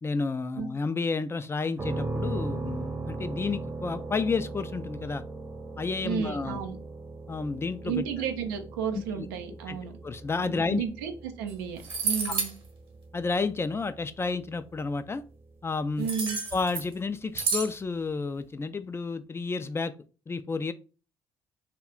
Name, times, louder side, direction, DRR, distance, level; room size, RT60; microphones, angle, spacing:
voice 1, 0.0-5.2 5.8-6.6 7.3-8.0 8.9-9.3 9.7-9.8 10.0-10.8 12.3-12.4 13.1-15.2 15.6-16.1 16.5-19.9 20.3-20.7, left 4 dB, 25° left, 12 dB, 0.3 m, -31 dB
sound 1, 1.8-15.5, right 3 dB, 20° right, 0.7 m, -39 dB
voice 2, 6.0-6.8 7.8-10.0 10.4-12.5 16.0-16.4, right 7 dB, 85° right, 6 dB, 0.5 m, -33 dB
sound 2, 11.5-11.6 11.8-12.5 16.0-16.9 17.3-17.7, right 5 dB, 55° right, 1.0 m, -30 dB
2.3 x 2.1 x 3.7 m, 0.35 s
hypercardioid pair, 50°, 11 cm